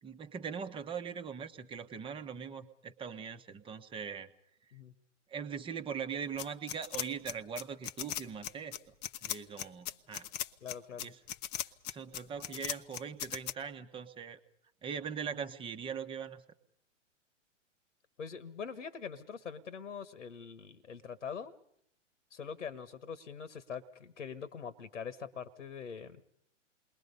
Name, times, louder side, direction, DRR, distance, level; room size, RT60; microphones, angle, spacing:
voice 1, 0.0-4.3 5.3-8.9 9.2-10.3 11.0-11.2 11.9-14.4 14.8-16.4, right 6 dB, 15° right, 10 dB, 1.1 m, -41 dB
sound 1, 6.4-13.5, left 12 dB, 35° left, 0.8 m, -38 dB
voice 2, 10.6-11.1 18.2-21.5 22.3-26.2, left 6 dB, 75° left, 12 dB, 1.5 m, -43 dB
28.5 x 21.0 x 5.4 m, 0.69 s
figure-of-eight pair, 115°, 38 cm